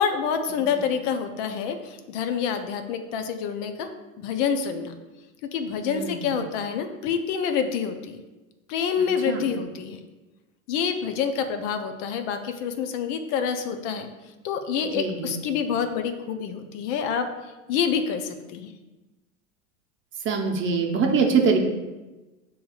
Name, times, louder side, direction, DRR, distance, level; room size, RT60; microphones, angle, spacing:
voice 1, 0.0-3.9 4.2-5.0 5.5-8.2 8.7-10.0 10.7-14.1 14.4-18.7, left 7 dB, 60° left, 7 dB, 0.6 m, -27 dB
voice 2, 5.8-6.3 9.3-9.4 15.0-15.3 20.2-21.6, right 5 dB, 30° right, 1 dB, 0.7 m, -23 dB
7.0 x 3.1 x 2.3 m, 1.1 s
hypercardioid pair, 90°, 41 cm